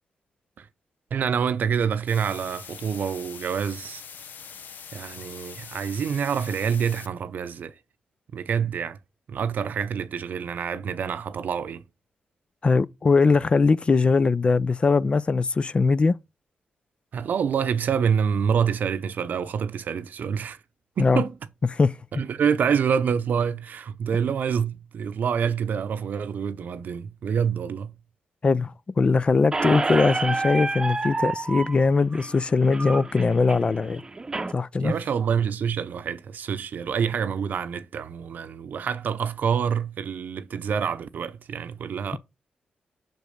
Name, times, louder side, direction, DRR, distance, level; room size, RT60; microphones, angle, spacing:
voice 1, 1.1-4.0 4.9-7.8 8.3-9.0 9.3-11.8 17.1-20.6 21.0-21.3 22.1-27.9 34.8-42.2, right 7 dB, 70° right, 0.7 m, -27 dB
sound 1, 2.1-7.1, left 7 dB, 75° left, 0.8 m, -43 dB
voice 2, 12.6-16.2 21.0-21.2 21.7-22.0 28.4-34.0 34.5-34.9, left 4 dB, 35° left, 0.4 m, -21 dB
Squeak, 29.5-34.5, right 3 dB, 25° right, 0.8 m, -29 dB
6.0 x 5.3 x 6.4 m
cardioid pair, 95°, 3 cm